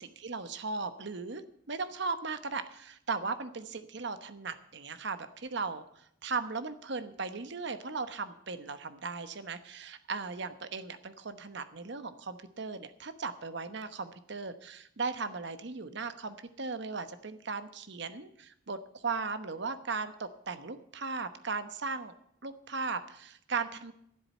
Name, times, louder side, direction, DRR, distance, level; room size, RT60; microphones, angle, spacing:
voice 1, 0.0-1.4 1.7-22.1 22.4-23.9, right 4 dB, 60° right, 11 dB, 1.0 m, -37 dB
12.5 x 7.6 x 9.2 m, 0.73 s
head